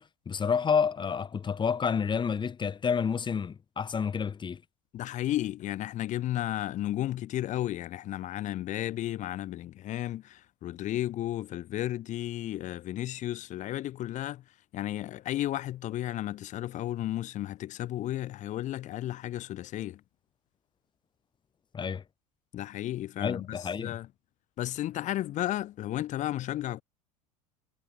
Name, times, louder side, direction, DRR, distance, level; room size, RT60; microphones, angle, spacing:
voice 1, 0.0-4.6 21.7-22.0 23.2-24.0, left 6 dB, 25° left, 2.4 m, -29 dB
voice 2, 4.9-14.4 14.7-20.0 22.5-24.1 24.6-26.8, left 13 dB, 40° left, 1.0 m, -33 dB
hypercardioid pair, 90°, 19 cm